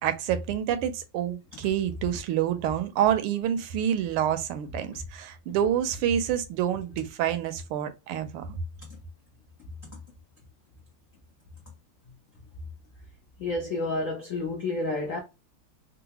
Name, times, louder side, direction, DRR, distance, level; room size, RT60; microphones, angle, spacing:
voice 1, 0.0-8.6, right 10 dB, 85° right, 1.5 m, -27 dB
voice 2, 13.4-15.2, left 2 dB, 75° left, 0.7 m, -30 dB
3.8 x 2.2 x 2.8 m
omnidirectional pair, 2.4 m